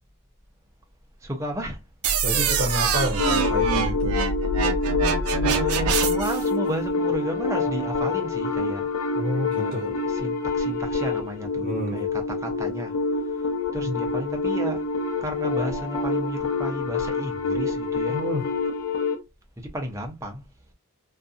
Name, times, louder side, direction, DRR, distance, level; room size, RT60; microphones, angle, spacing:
voice 1, 1.2-1.8 2.4-2.6 5.3-8.9 9.5-12.9 13.2-14.8 15.2-18.2 19.6-20.4, equal, 15° right, 0.6 m, -33 dB
sound 1, 2.0-6.4, right 4 dB, 80° right, 0.5 m, -24 dB
voice 2, 2.2-4.2 9.2-10.0 11.6-12.0 13.8-13.9 18.1-18.4, equal, 45° right, 0.8 m, -29 dB
sound 2, 3.2-19.2, left 3 dB, 85° left, 0.6 m, -27 dB
2.6 x 2.3 x 2.4 m
head